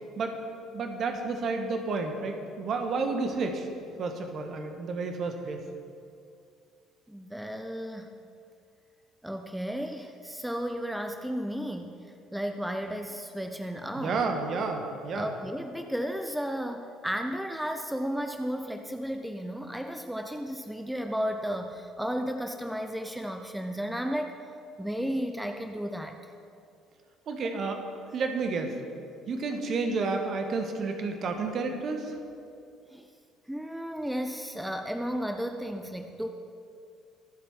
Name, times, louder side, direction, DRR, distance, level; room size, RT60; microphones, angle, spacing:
voice 1, 0.7-3.7 4.0-5.6 14.0-15.3 27.3-27.8 28.1-28.7 29.3-32.1, right 4 dB, 45° right, 5 dB, 1.6 m, -31 dB
voice 2, 7.1-8.2 9.2-12.0 12.3-14.3 15.1-24.3 24.8-26.2 32.9-33.1 33.5-36.3, equal, 5° right, 5 dB, 0.9 m, -33 dB
23.5 x 8.2 x 4.6 m, 2.4 s
figure-of-eight pair, 50°, 0 cm